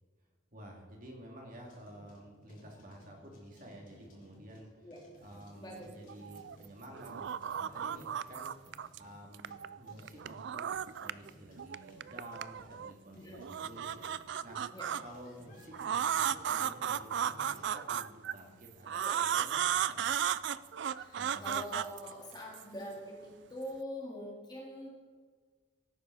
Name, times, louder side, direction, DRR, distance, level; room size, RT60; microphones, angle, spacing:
voice 1, 0.5-4.9 5.2-8.5 9.0-10.7 11.0-14.6 15.0-20.2 21.1-21.6, equal, 45° right, 0 dB, 2.7 m, -51 dB
sound 1, 1.6-17.8, equal, 45° left, 3.5 m, -60 dB
voice 2, 5.5-5.9 13.1-13.4 14.7-14.9 19.0-19.2 21.0-24.9, equal, 20° left, -2 dB, 2.3 m, -44 dB
sound 2, 6.1-6.6 6.9-9.0 9.3-11.3 11.6-12.9 13.3-15.0 15.7-18.3 18.9-22.6, right 9 dB, 60° right, 0.3 m, -34 dB
16.5 x 9.3 x 4.2 m, 1.5 s
head